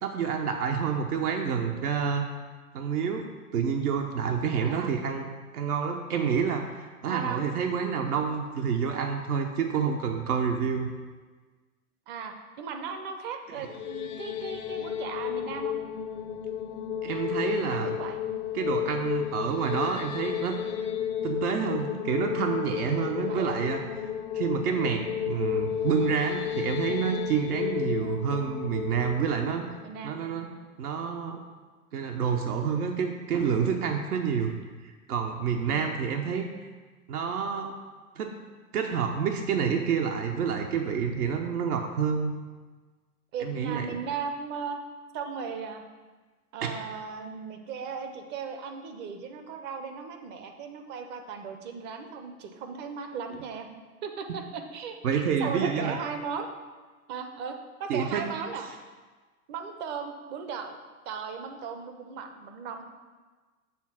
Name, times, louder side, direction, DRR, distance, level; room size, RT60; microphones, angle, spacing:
voice 1, 0.0-2.3 2.7-3.3 3.5-5.3 5.5-10.9 13.6-13.7 17.0-18.0 18.5-20.6 21.2-23.8 24.3-29.7 30.0-30.5 30.8-31.4 31.9-34.5 34.8-36.7 37.1-37.8 38.2-38.4 38.7-42.3 43.4-44.0 46.6-46.7 55.0-56.0 57.9-58.2, right 6 dB, 75° right, 2 dB, 0.9 m, -28 dB
voice 2, 4.6-4.9 7.0-7.4 12.1-15.7 17.7-18.2 23.3-23.6 29.8-30.1 35.7-35.8 43.3-44.8 45.1-45.8 46.5-53.7 54.0-56.5 57.1-58.7 59.5-60.8 61.1-62.8, right 6 dB, 25° right, 6 dB, 0.5 m, -37 dB
sound 1, 13.5-30.6, left 9 dB, 35° left, 0.4 m, -33 dB
7.1 x 3.5 x 5.9 m, 1.4 s
hypercardioid pair, 115°, 45 cm